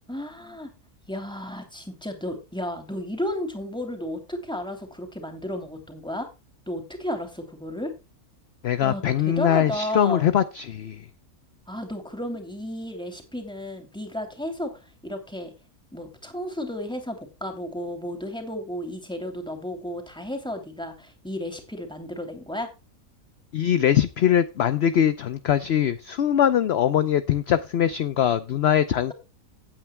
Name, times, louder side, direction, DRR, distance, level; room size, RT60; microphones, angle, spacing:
voice 1, 0.1-0.7 1.1-6.3 6.7-7.9 8.8-10.3 11.7-15.5 15.9-22.7, left 1 dB, 5° left, 4 dB, 2.8 m, -33 dB
voice 2, 8.6-11.1 23.5-29.1, left 10 dB, 55° left, 12 dB, 0.8 m, -22 dB
17.0 x 8.8 x 2.2 m, 0.28 s
omnidirectional pair, 1.5 m